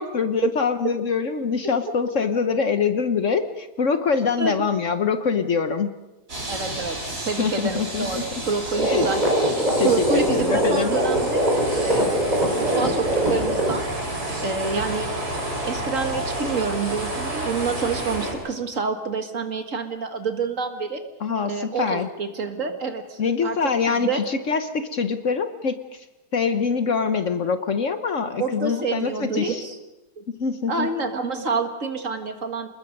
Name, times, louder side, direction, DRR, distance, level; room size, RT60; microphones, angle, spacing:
voice 1, 0.0-5.9 7.4-8.2 8.8-9.1 9.8-11.0 21.2-22.1 23.2-26.0 26.3-29.6 30.4-30.9, left 5 dB, 50° left, 9 dB, 1.2 m, -24 dB
sound 1, 6.3-18.3, right 1 dB, 65° right, 5.4 m, -30 dB
voice 2, 6.5-7.0 7.2-9.2 9.8-11.5 11.8-12.3 12.5-13.8 14.4-15.1 15.6-21.0 21.5-23.6 23.9-24.2 28.4-29.8 30.2-30.3 30.7-32.7, right 4 dB, 50° right, 6 dB, 2.1 m, -27 dB
sound 2, 8.7-13.8, right 1 dB, 25° right, 3.9 m, -22 dB
29.0 x 20.5 x 5.3 m, 1.0 s
omnidirectional pair, 1.8 m